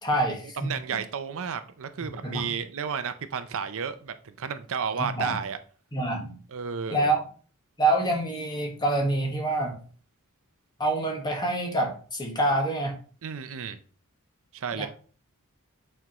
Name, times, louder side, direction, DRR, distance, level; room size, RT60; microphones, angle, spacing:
voice 1, 0.0-0.7 2.2-2.5 4.9-5.4 5.9-6.4 6.9-7.2 7.8-9.8 10.8-13.0 14.7-14.9, right 1 dB, 20° left, 1.4 m, -26 dB
voice 2, 0.6-5.6 6.5-7.1 13.2-13.8 14.5-14.9, right 6 dB, 65° right, 0.6 m, -32 dB
8.1 x 4.5 x 3.0 m
head